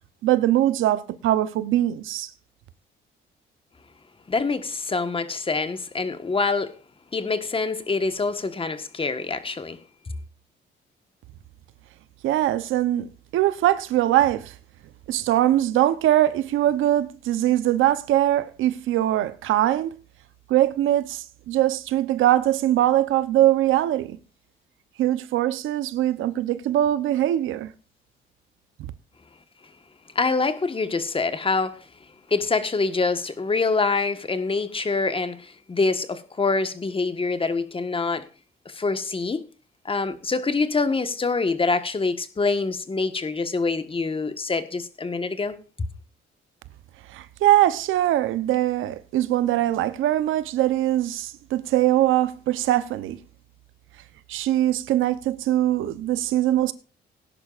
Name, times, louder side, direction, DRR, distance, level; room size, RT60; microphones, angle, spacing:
voice 1, 0.2-2.3 12.2-13.1 13.3-14.5 15.1-20.0 20.5-24.2 25.0-27.7 47.1-53.2 54.3-56.7, right 13 dB, 85° right, 0.9 m, -22 dB
voice 2, 4.3-6.8 7.1-9.8 30.1-31.9 32.3-38.3 38.6-39.5 39.8-45.9, left 4 dB, 25° left, 1.5 m, -25 dB
18.5 x 10.5 x 2.5 m
cardioid pair, 90°, 20 cm